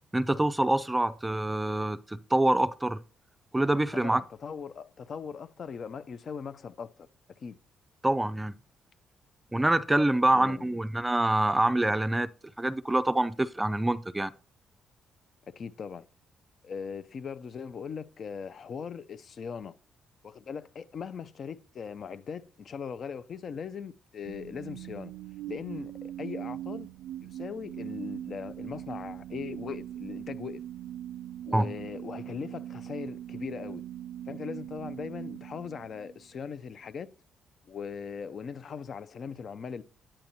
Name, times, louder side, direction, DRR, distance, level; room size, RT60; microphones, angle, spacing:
voice 1, 0.1-3.0 3.5-4.2 8.0-8.6 9.5-12.3 12.6-14.3 31.5-31.7, right 1 dB, 10° right, 0.4 m, -26 dB
voice 2, 3.9-6.9 7.4-7.6 10.3-10.8 15.5-16.1 16.6-19.8 20.2-25.1 25.5-26.9 27.2-30.6 31.4-33.8 34.3-37.1 37.7-39.8, left 6 dB, 55° left, 0.5 m, -39 dB
sound 1, 24.3-36.4, right 12 dB, 75° right, 0.3 m, -41 dB
8.9 x 8.7 x 2.7 m
cardioid pair, 90°, 0 cm